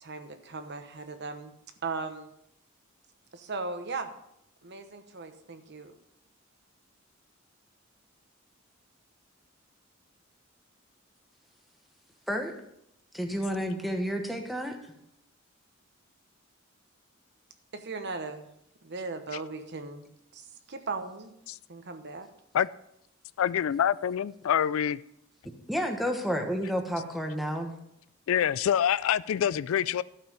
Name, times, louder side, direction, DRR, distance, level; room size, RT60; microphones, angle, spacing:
voice 1, 0.0-1.5 1.8-2.3 3.3-4.1 4.6-5.9 17.7-18.5 18.8-21.3 21.7-22.3, right 4 dB, 60° right, 8 dB, 1.0 m, -38 dB
voice 2, 13.1-14.8 25.7-27.7, equal, ahead, 4 dB, 1.2 m, -30 dB
voice 3, 23.4-25.0 28.3-30.0, left 9 dB, 85° left, 19 dB, 0.3 m, -26 dB
12.0 x 5.6 x 5.5 m, 0.77 s
head